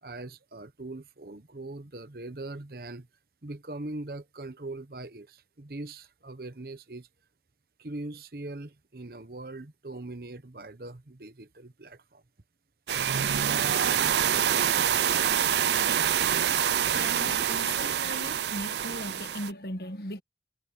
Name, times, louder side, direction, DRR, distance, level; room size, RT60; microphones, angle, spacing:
voice 1, 0.0-3.1 3.4-7.1 7.8-12.2, right 2 dB, 55° right, 1.1 m, -41 dB
sound 1, 12.9-19.5, right 9 dB, 75° right, 0.5 m, -26 dB
voice 2, 16.9-20.2, left 1 dB, 60° left, 1.8 m, -38 dB
head